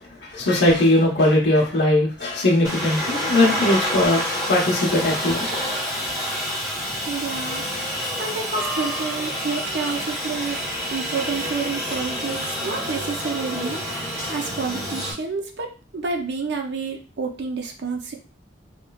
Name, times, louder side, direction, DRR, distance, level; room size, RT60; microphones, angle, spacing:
voice 1, 0.3-4.2 4.5-5.6, left 1 dB, 60° left, -5 dB, 0.8 m, -19 dB
Aircraft, 2.6-15.1, equal, 15° right, 0.9 m, -28 dB
voice 2, 7.1-10.6 10.9-14.0 14.3-15.7 15.9-18.2, right 4 dB, 55° right, 2 dB, 0.5 m, -29 dB
3.1 x 3.0 x 2.3 m, 0.36 s
head